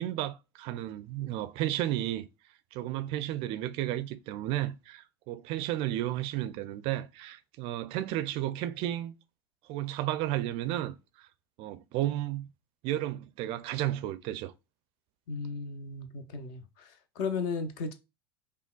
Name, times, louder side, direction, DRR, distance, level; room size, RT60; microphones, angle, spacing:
voice 1, 0.0-2.3 2.7-9.1 9.7-11.3 11.6-12.5 12.8-14.5, right 13 dB, 45° right, 0.4 m, -33 dB
voice 2, 15.3-17.9, left 4 dB, 50° left, 0.7 m, -35 dB
5.4 x 2.2 x 2.3 m
figure-of-eight pair, 80°, 13 cm